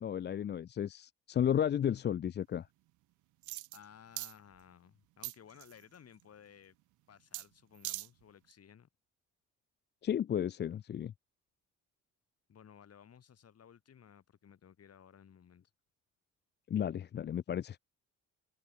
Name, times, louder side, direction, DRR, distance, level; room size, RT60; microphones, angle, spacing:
voice 1, 0.0-2.7 10.0-11.1 16.7-17.8, left 9 dB, 35° left, 0.4 m, -33 dB
sound 1, 3.4-3.8 4.2-4.3 5.2-5.8 7.3-7.5 7.8-8.1 8.5-8.6, right 19 dB, 80° right, 0.5 m, -41 dB
voice 2, 3.7-6.8 7.1-8.9 12.5-15.7, left 8 dB, 55° left, 5.6 m, -58 dB
open air
cardioid pair, 90°, 30 cm